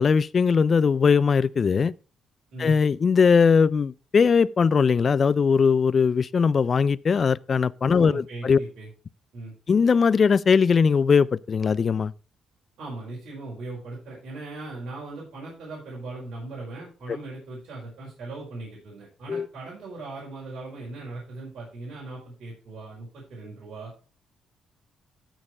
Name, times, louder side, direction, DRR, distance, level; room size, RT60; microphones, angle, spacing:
voice 1, 0.0-1.9 2.6-8.6 9.7-12.1 17.1-17.2 19.3-19.5, left 5 dB, 45° left, 0.3 m, -20 dB
voice 2, 8.0-8.9 9.3-9.5 12.8-23.9, right 2 dB, 65° right, 4.4 m, -39 dB
13.0 x 4.7 x 4.6 m
cardioid pair, 90°, 0 cm